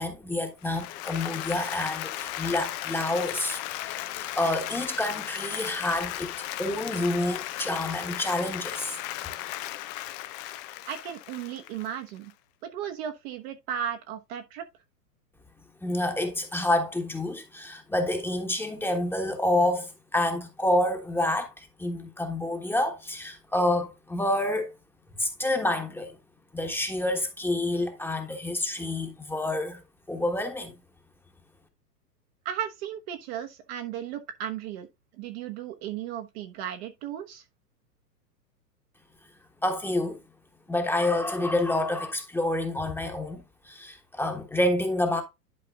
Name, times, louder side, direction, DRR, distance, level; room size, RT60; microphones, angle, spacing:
voice 1, 0.0-6.3 6.6-9.0 15.8-24.7 25.2-26.2 26.5-30.7 39.6-40.2 40.7-45.2, left 1 dB, 5° left, 1.3 m, -28 dB
Applause, 0.6-12.3, left 15 dB, 30° left, 0.5 m, -36 dB
voice 2, 10.9-12.3 12.6-14.6 32.4-34.9 35.2-37.4, right 10 dB, 40° right, 1.1 m, -35 dB
11.0 x 4.9 x 2.4 m
hypercardioid pair, 110°, 48 cm